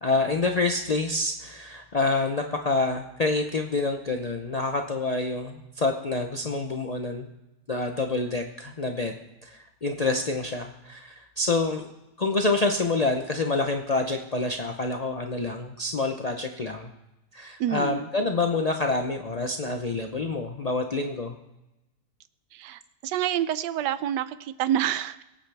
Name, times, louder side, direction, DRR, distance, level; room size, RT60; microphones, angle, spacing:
voice 1, 0.0-7.3 7.7-9.1 9.4-11.9 12.2-16.9 17.3-21.4, left 3 dB, 55° left, 4 dB, 0.4 m, -27 dB
voice 2, 17.6-18.1 22.5-25.2, right 11 dB, 80° right, 14 dB, 1.2 m, -28 dB
23.0 x 8.8 x 3.4 m, 0.96 s
omnidirectional pair, 1.9 m